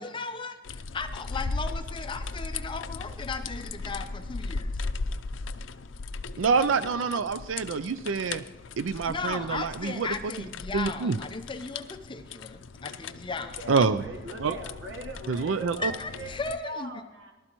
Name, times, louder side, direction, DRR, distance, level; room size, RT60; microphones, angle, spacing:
voice 1, 0.0-4.8 9.1-13.6 15.8-16.9, left 4 dB, 25° left, 8 dB, 0.6 m, -36 dB
sound 1, 0.6-16.6, left 3 dB, 75° left, 0.5 m, -38 dB
voice 2, 6.4-8.4 8.8-10.1 10.7-11.2 13.7-14.0 14.4-14.6 15.3-15.9, right 5 dB, 90° right, 13 dB, 0.4 m, -26 dB
voice 3, 13.6-17.3, right 1 dB, 65° right, 4 dB, 1.3 m, -41 dB
19.0 x 12.0 x 3.0 m, 1.2 s
head